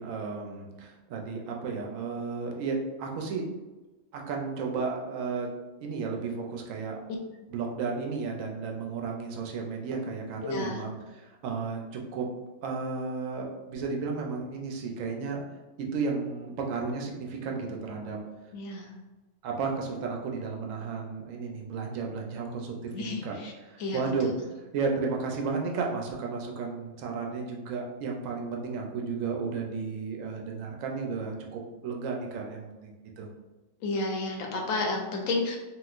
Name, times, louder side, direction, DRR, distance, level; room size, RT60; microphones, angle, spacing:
voice 1, 0.0-3.5 4.1-5.5 5.8-7.0 7.5-12.3 12.6-15.4 15.8-18.2 19.4-24.3 24.7-33.3, right 4 dB, 80° right, 0 dB, 1.0 m, -33 dB
voice 2, 10.4-10.8 18.5-18.9 22.9-23.5 23.8-24.0 33.8-35.6, left 2 dB, 85° left, 1 dB, 1.0 m, -31 dB
3.8 x 2.4 x 2.4 m, 1.2 s
omnidirectional pair, 1.3 m